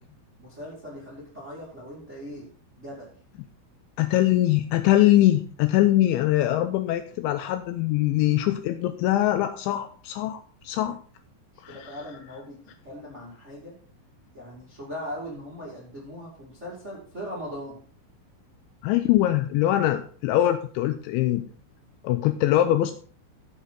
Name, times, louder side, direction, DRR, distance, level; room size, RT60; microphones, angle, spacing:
voice 1, 0.4-2.5 2.8-3.1 11.7-13.7 14.3-17.8, equal, 25° right, -3 dB, 1.4 m, -39 dB
voice 2, 4.0-11.0 11.6-12.0 18.8-21.4 22.0-22.9, left 14 dB, 85° left, 9 dB, 2.7 m, -22 dB
13.0 x 7.2 x 4.1 m, 0.43 s
omnidirectional pair, 5.7 m